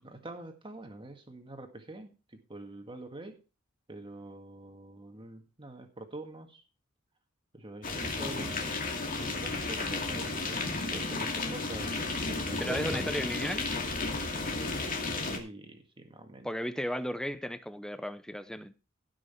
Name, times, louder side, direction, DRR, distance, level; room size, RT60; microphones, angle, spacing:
voice 1, 0.0-3.4 3.9-6.6 7.5-8.6 9.2-13.1 15.3-16.5, right 2 dB, 25° right, 1.9 m, -45 dB
sound 1, 7.8-15.4, left 3 dB, 40° left, 2.4 m, -33 dB
voice 2, 12.6-13.8 16.4-18.7, equal, 5° left, 0.7 m, -35 dB
16.5 x 6.3 x 4.6 m
head